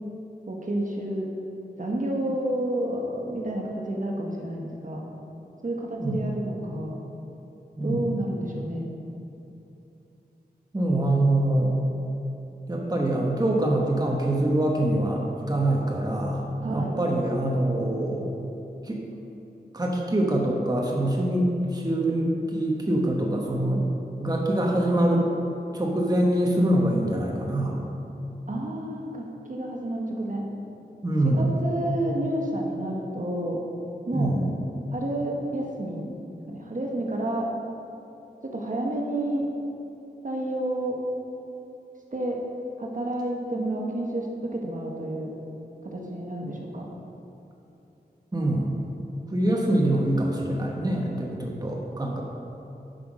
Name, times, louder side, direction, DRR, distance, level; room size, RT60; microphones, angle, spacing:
voice 1, 0.5-1.2 1.8-5.0 5.6-7.0 7.8-8.8 16.6-16.9 28.5-30.4 31.2-33.6 34.1-34.3 34.9-36.1 36.5-37.5 38.5-39.5 40.2-41.0 42.1-42.4 42.8-45.3 45.8-46.9, right 1 dB, 50° right, -1 dB, 1.3 m, -30 dB
voice 2, 7.8-8.1 10.7-11.7 12.7-18.3 18.8-19.0 19.7-23.9 24.2-25.3 25.7-27.9 31.0-31.6 34.1-34.6 48.3-48.8 49.3-52.2, right 1 dB, 20° right, -1 dB, 1.1 m, -24 dB
10.5 x 5.8 x 5.0 m, 2.9 s
wide cardioid pair, 70°, 17 cm